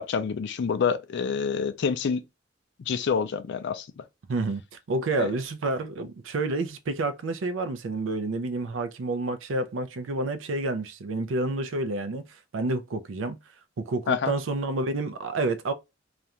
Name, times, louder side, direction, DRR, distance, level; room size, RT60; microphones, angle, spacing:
voice 1, 0.0-2.2 2.9-4.0 5.2-5.3 14.1-14.3, left 6 dB, 60° left, 0.4 m, -27 dB
voice 2, 4.3-4.6 4.9-12.2 12.5-13.4 13.8-15.7, right 2 dB, 70° right, 0.4 m, -29 dB
2.4 x 2.2 x 2.8 m
head